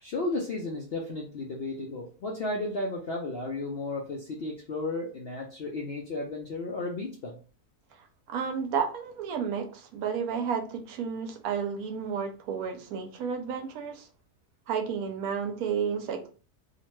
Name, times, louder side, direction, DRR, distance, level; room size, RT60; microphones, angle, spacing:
voice 1, 0.0-7.4, left 2 dB, 65° left, -1 dB, 0.6 m, -33 dB
voice 2, 8.3-14.1 14.7-16.3, right 6 dB, 75° right, 5 dB, 1.0 m, -31 dB
2.8 x 2.1 x 3.0 m, 0.38 s
omnidirectional pair, 1.6 m